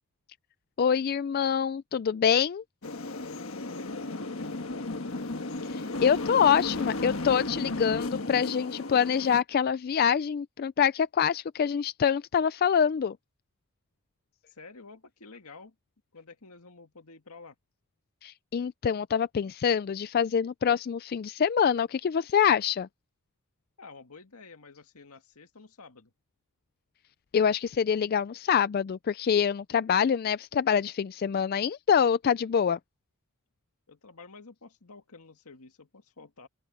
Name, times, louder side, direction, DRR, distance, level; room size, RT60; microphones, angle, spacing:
voice 1, 0.8-2.6 5.7-13.2 18.2-22.9 27.3-32.8, left 7 dB, 45° left, 0.3 m, -25 dB
sound 1, 2.8-9.4, left 2 dB, 65° left, 1.4 m, -34 dB
voice 2, 3.5-4.9 14.5-15.8 16.1-17.6 23.8-26.1 33.9-36.5, left 3 dB, 80° left, 2.0 m, -50 dB
open air
head